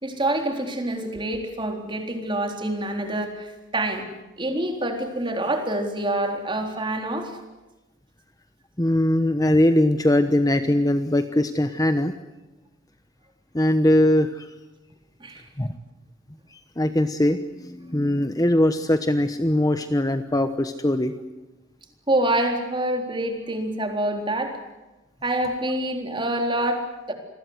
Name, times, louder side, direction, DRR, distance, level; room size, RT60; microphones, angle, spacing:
voice 1, 0.0-4.1 4.4-7.4 15.2-15.4 22.1-24.6 25.2-27.1, right 1 dB, 25° right, 4 dB, 3.8 m, -26 dB
voice 2, 8.8-12.1 13.5-14.5 15.6-15.7 16.8-21.1, left 1 dB, 20° left, 9 dB, 1.0 m, -21 dB
28.0 x 20.5 x 8.0 m, 1.1 s
head